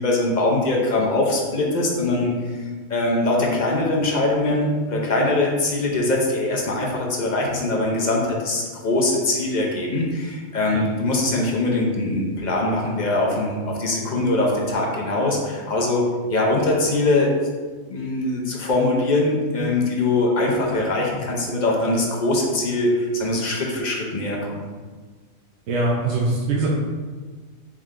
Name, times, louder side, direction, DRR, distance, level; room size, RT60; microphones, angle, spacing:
voice 1, 0.0-2.6 2.9-16.0 16.3-17.3 17.9-24.6, left 2 dB, 45° left, -2 dB, 0.6 m, -22 dB
voice 2, 25.7-26.7, right 2 dB, 60° right, -3 dB, 0.8 m, -22 dB
3.7 x 3.2 x 3.6 m, 1.4 s
omnidirectional pair, 1.4 m